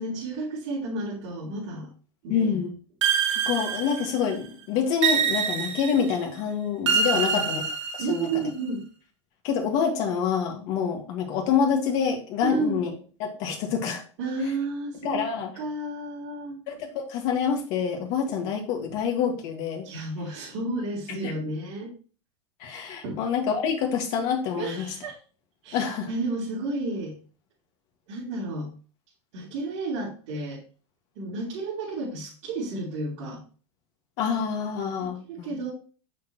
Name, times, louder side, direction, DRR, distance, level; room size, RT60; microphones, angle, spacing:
voice 1, 0.0-1.9 2.2-2.6 7.1-7.6 8.0-8.8 12.4-12.8 14.2-15.3 15.5-16.6 19.8-21.9 23.0-23.2 24.5-25.2 25.6-27.1 28.1-28.7 29.3-30.6 31.1-33.4 35.0-35.7, right 2 dB, 50° right, -8 dB, 3.2 m, -32 dB
voice 2, 2.3-2.7 3.4-7.6 7.9-8.4 9.4-12.9 13.2-14.0 15.0-15.5 16.7-19.9 21.2-21.4 22.6-24.8 25.7-26.1 34.2-35.7, left 7 dB, 45° left, 3 dB, 1.9 m, -27 dB
sound 1, 3.0-4.4 5.0-6.2 6.9-8.4, right 6 dB, 75° right, 1.6 m, -25 dB
7.2 x 6.6 x 3.0 m, 0.38 s
supercardioid pair, 155°, 15 cm